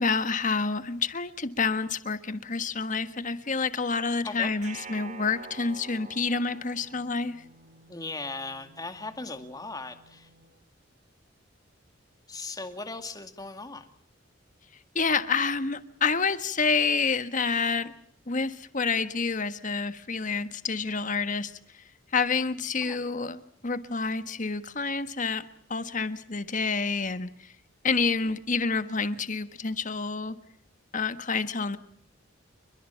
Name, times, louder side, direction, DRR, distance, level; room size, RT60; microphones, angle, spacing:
voice 1, 0.0-7.4 14.9-17.9 18.3-21.5 22.1-23.4 23.6-25.4 25.7-27.5 27.8-30.4 30.9-31.8, left 4 dB, 40° left, 11 dB, 1.5 m, -28 dB
sound 1, 4.6-7.7, right 5 dB, 40° right, 2.5 m, -46 dB
sound 2, 6.8-10.6, equal, 65° right, 4.9 m, -59 dB
voice 2, 7.9-10.3 12.3-13.9 22.8-23.0, left 3 dB, 20° left, 8 dB, 2.2 m, -38 dB
30.0 x 22.5 x 5.8 m, 0.63 s
head